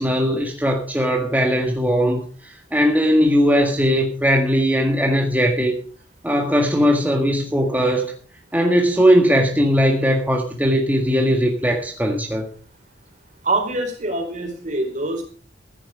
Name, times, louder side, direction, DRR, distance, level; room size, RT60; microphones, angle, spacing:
voice 1, 0.0-5.7 6.2-8.1 8.5-12.5, equal, 10° right, 1 dB, 1.8 m, -19 dB
voice 2, 13.4-15.2, right 2 dB, 45° right, 3 dB, 4.5 m, -24 dB
15.0 x 10.5 x 5.1 m, 0.40 s
head